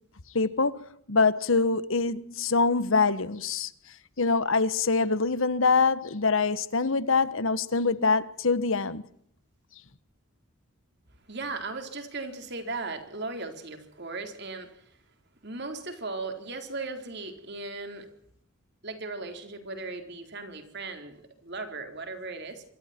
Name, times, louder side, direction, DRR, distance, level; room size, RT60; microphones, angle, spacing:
voice 1, 0.3-3.7 4.2-9.0, left 4 dB, 70° left, 1.3 m, -24 dB
voice 2, 11.3-15.0 15.4-18.1 18.8-22.6, right 3 dB, 50° right, 4.1 m, -37 dB
26.0 x 25.0 x 4.5 m
head